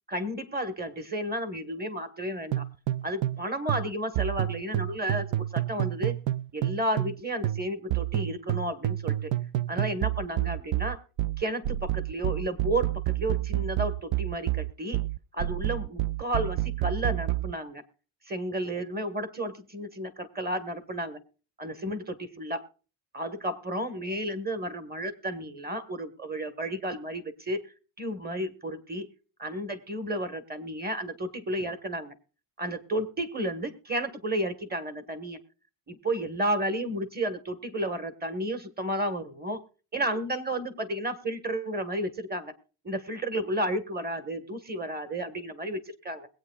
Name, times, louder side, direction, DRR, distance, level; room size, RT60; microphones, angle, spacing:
voice 1, 0.1-2.6 3.0-6.2 6.5-9.3 9.7-11.0 11.4-15.0 15.3-17.8 18.2-21.2 21.6-22.6 23.1-27.6 28.0-29.1 29.4-32.1 32.6-35.4 35.9-39.6 39.9-42.5 42.8-46.3, right 1 dB, 20° right, 10 dB, 1.4 m, -32 dB
sound 1, 2.5-3.4 3.7-7.2 7.4-17.5, right 15 dB, 70° right, 0.6 m, -29 dB
21.5 x 8.6 x 2.3 m, 0.36 s
cardioid pair, 120°, 49 cm